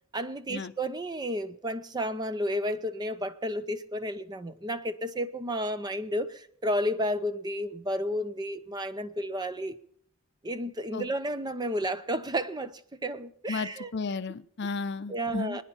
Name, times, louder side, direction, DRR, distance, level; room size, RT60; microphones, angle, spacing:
voice 1, 0.1-9.8 10.4-13.9 14.6-14.7 15.1-15.6, equal, 20° right, 0.6 m, -32 dB
voice 2, 13.5-15.6, left 4 dB, 50° left, 0.5 m, -34 dB
23.5 x 9.9 x 5.6 m
head